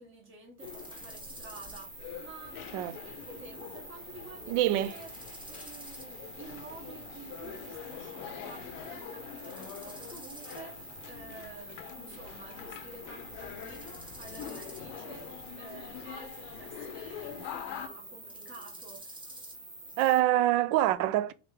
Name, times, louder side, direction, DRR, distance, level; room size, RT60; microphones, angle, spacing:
voice 1, 0.0-2.6 3.0-5.1 5.5-19.2, right 3 dB, 30° right, 1.6 m, -50 dB
sound 1, 0.6-17.9, left 9 dB, 55° left, 0.6 m, -45 dB
sound 2, 0.6-20.2, right 2 dB, 10° right, 0.8 m, -47 dB
voice 2, 4.5-4.9 20.0-21.3, right 14 dB, 70° right, 0.6 m, -25 dB
3.5 x 3.4 x 3.2 m
cardioid pair, 140°, 40 cm